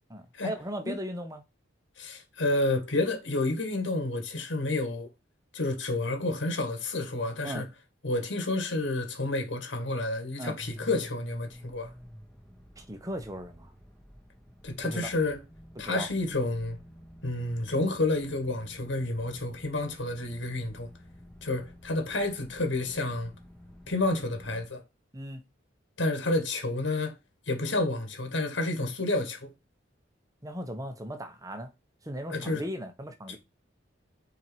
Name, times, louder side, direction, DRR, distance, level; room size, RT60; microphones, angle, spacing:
voice 1, 0.1-1.4 7.4-7.6 10.4-10.6 12.8-13.7 14.8-15.1 15.8-16.1 25.1-25.4 30.4-31.7 32.0-33.4, equal, 15° right, 1.1 m, -37 dB
voice 2, 2.0-5.1 5.5-7.7 8.0-11.9 14.6-15.4 15.8-16.8 17.2-20.9 21.4-23.3 23.9-24.8 26.0-27.2 27.5-29.5 32.3-32.6, left 2 dB, 75° left, 1.9 m, -30 dB
sound 1, 10.6-24.7, equal, 5° left, 1.3 m, -50 dB
4.7 x 4.6 x 4.5 m
head